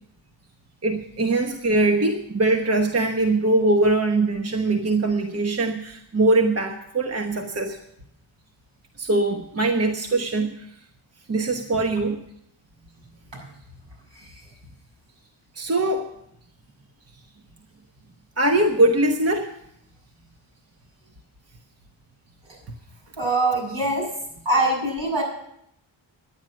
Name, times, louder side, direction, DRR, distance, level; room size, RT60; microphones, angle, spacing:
voice 1, 0.8-7.8 9.0-10.8 11.3-12.2 15.5-16.1 18.4-19.5 22.7-22.8, right 2 dB, 30° right, 4 dB, 1.1 m, -22 dB
voice 2, 23.2-24.1 24.4-25.2, right 2 dB, 65° right, -1 dB, 6.8 m, -23 dB
11.5 x 9.4 x 7.4 m, 0.75 s
cardioid pair, 90°, 48 cm